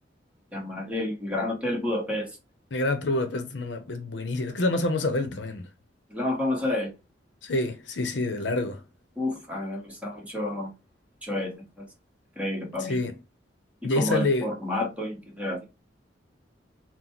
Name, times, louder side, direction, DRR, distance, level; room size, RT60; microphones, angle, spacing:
voice 1, 0.5-2.3 6.1-6.9 9.2-10.7 11.2-11.8 12.4-13.0 14.0-15.7, left 1 dB, 10° right, 1.4 m, -30 dB
voice 2, 2.7-5.7 7.4-8.8 12.8-13.2 13.8-14.5, left 2 dB, 75° left, 0.8 m, -27 dB
4.0 x 2.2 x 4.4 m
head